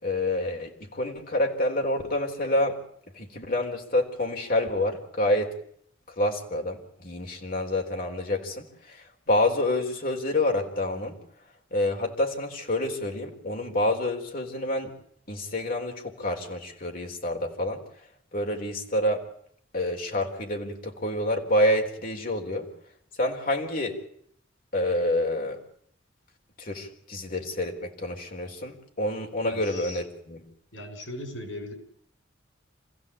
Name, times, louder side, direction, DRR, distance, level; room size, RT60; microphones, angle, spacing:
voice 1, 0.0-2.8 3.1-5.5 6.1-11.2 11.7-14.9 15.3-17.8 18.3-19.2 19.7-22.7 23.2-24.0 24.7-25.6 26.6-30.4, left 1 dB, 50° left, 2 dB, 4.1 m, -28 dB
voice 2, 29.4-30.0 30.7-31.7, left 1 dB, 90° left, 7 dB, 6.9 m, -38 dB
27.0 x 16.0 x 8.6 m, 0.67 s
head